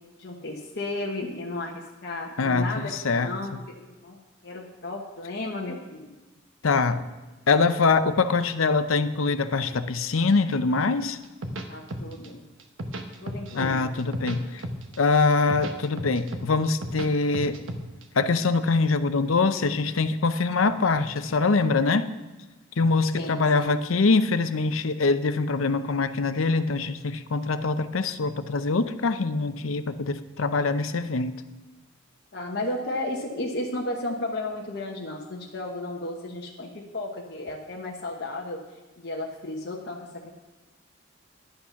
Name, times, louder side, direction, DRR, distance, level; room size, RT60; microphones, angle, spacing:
voice 1, 0.2-4.2 4.4-6.1 11.7-12.4 13.2-14.0 23.1-23.7 32.3-38.6 39.0-40.3, left 2 dB, 55° left, -2 dB, 1.1 m, -34 dB
voice 2, 2.4-3.3 6.6-7.0 7.5-11.2 13.5-14.6 15.0-17.6 18.1-22.1 22.8-31.3, left 4 dB, 85° left, 11 dB, 0.7 m, -24 dB
sound 1, 11.2-12.3 12.6-13.7 14.0-15.0 15.3-17.1 17.3-18.2, right 1 dB, 70° right, 1.1 m, -34 dB
11.5 x 8.7 x 5.8 m, 1.2 s
head